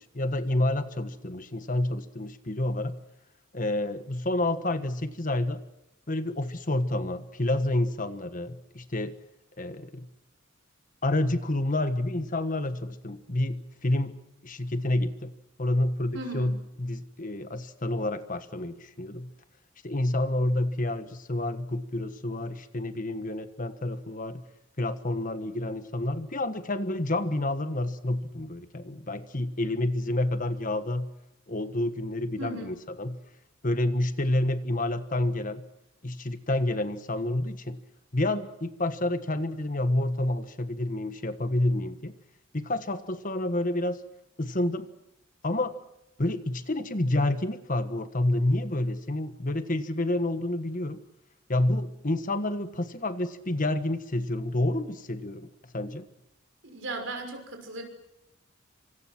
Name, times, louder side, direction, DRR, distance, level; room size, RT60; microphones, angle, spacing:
voice 1, 0.1-3.0 3.5-5.6 6.1-9.1 9.6-10.1 11.0-14.1 14.4-15.3 15.6-19.3 19.8-24.4 24.8-31.1 31.5-33.2 33.6-35.6 36.0-37.8 38.1-42.2 42.5-44.0 44.4-44.8 45.4-45.8 46.2-51.0 51.5-56.1, left 1 dB, 40° left, 10 dB, 1.4 m, -29 dB
voice 2, 16.1-16.6 32.4-32.8 56.6-57.8, right 2 dB, 65° right, 5 dB, 6.1 m, -37 dB
26.0 x 26.0 x 6.1 m, 0.88 s
head